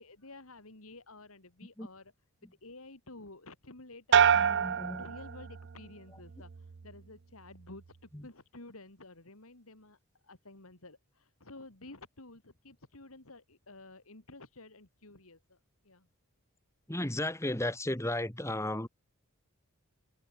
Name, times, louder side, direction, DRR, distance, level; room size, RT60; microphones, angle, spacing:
voice 1, 0.0-2.1 2.6-4.2 5.0-15.6 15.8-16.1, left 2 dB, 75° left, 3.2 m, -52 dB
sound 1, 4.1-5.9 6.3-6.8, right 7 dB, 55° right, 0.5 m, -27 dB
voice 2, 4.3-5.1 8.1-8.3 16.9-18.9, left 1 dB, 15° left, 1.6 m, -34 dB
head